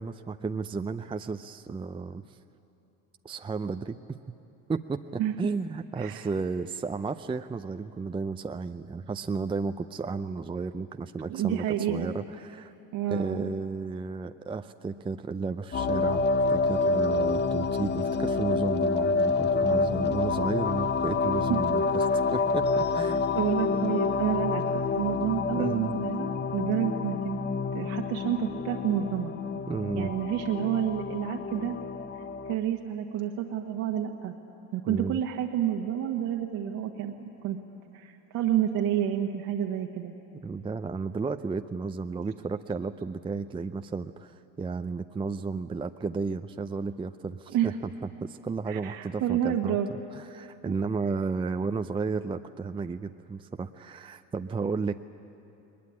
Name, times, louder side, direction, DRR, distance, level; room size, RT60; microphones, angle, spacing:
voice 1, 0.0-2.4 3.2-4.2 4.7-12.7 13.1-23.3 25.6-25.9 29.7-30.1 34.9-35.2 40.4-47.9 48.2-49.8 50.1-55.0, right 4 dB, 15° right, 8 dB, 0.5 m, -33 dB
voice 2, 6.0-6.3 11.3-12.1 12.9-13.5 21.5-21.6 23.3-24.6 25.0-27.4 27.7-29.3 29.9-31.8 32.5-34.3 34.7-37.6 37.9-40.1 47.5-47.7 48.7-49.9 50.6-50.7, right 10 dB, 60° right, 1 dB, 1.5 m, -29 dB
sound 1, 15.7-32.5, left 4 dB, 25° left, 1.0 m, -28 dB
21.0 x 20.0 x 9.7 m, 2.9 s
hypercardioid pair, 80°, 38 cm